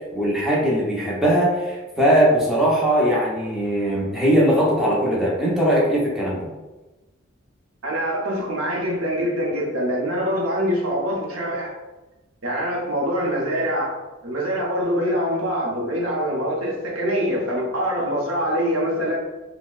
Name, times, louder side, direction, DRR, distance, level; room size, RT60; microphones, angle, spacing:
voice 1, 0.1-6.5, equal, ahead, -5 dB, 0.7 m, -20 dB
voice 2, 7.8-11.7 12.4-14.0 14.2-19.2, equal, 85° right, -2 dB, 0.7 m, -24 dB
4.2 x 2.1 x 2.3 m, 1.1 s
head